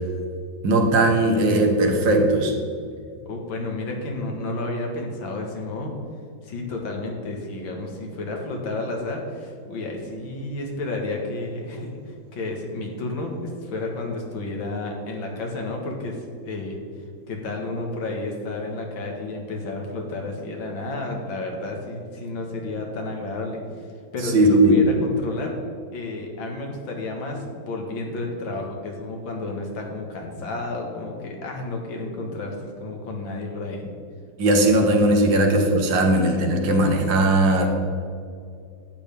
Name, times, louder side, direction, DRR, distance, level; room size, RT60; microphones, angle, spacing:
voice 1, 0.6-2.5 24.3-24.8 34.4-37.7, right 1 dB, 75° right, 3 dB, 1.9 m, -18 dB
voice 2, 3.3-5.9 6.4-16.8 17.3-23.6 24.1-25.6 25.9-33.9 35.3-35.5 36.7-36.8, left 2 dB, 85° left, 1 dB, 2.2 m, -31 dB
11.5 x 8.7 x 3.4 m, 2.3 s
omnidirectional pair, 2.1 m